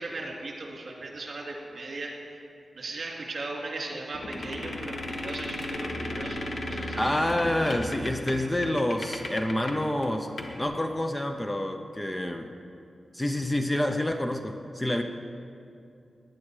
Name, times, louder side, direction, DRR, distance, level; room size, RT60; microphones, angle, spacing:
voice 1, 0.0-2.5 2.7-7.0, right 2 dB, 55° right, -1 dB, 2.6 m, -38 dB
sound 1, 4.1-9.8 10.0-10.1 10.4-10.6, left 1 dB, 55° left, 1.4 m, -35 dB
voice 2, 7.0-12.5 13.1-15.0, left 1 dB, 10° left, 5 dB, 0.6 m, -28 dB
18.5 x 10.5 x 4.9 m, 2.5 s
wide cardioid pair, 140°, 0 cm